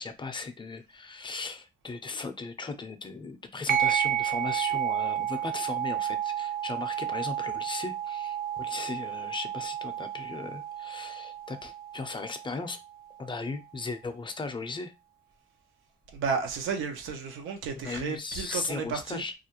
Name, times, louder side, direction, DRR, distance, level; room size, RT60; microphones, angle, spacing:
voice 1, 0.0-12.8 13.2-14.9 17.8-19.3, left 4 dB, 25° left, 0.4 m, -37 dB
sound 1, 3.7-12.7, right 10 dB, 50° right, 0.5 m, -31 dB
voice 2, 16.1-19.2, right 5 dB, 90° right, 0.6 m, -32 dB
2.4 x 2.1 x 2.9 m
cardioid pair, 90°, 20 cm